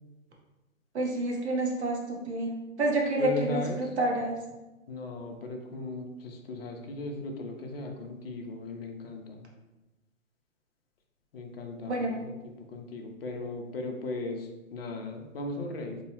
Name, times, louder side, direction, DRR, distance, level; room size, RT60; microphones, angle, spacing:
voice 1, 0.9-4.4 11.9-12.2, right 1 dB, 55° right, 0 dB, 0.6 m, -29 dB
voice 2, 3.2-3.8 4.9-9.4 11.3-16.0, left 2 dB, 45° left, 2 dB, 0.4 m, -37 dB
2.8 x 2.0 x 2.7 m, 1.0 s
hypercardioid pair, 140°, 42 cm